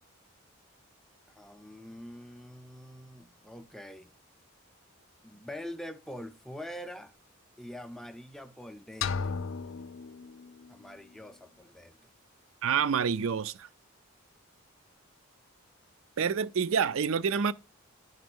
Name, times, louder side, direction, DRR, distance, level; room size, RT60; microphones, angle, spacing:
voice 1, 1.4-4.1 5.2-7.1 7.6-9.4 10.7-12.0, equal, ahead, 0.4 m, -44 dB
sound 1, 9.0-10.9, left 5 dB, 65° left, 0.4 m, -35 dB
voice 2, 12.6-13.7 16.2-17.5, right 6 dB, 70° right, 0.4 m, -27 dB
10.0 x 4.0 x 6.2 m
head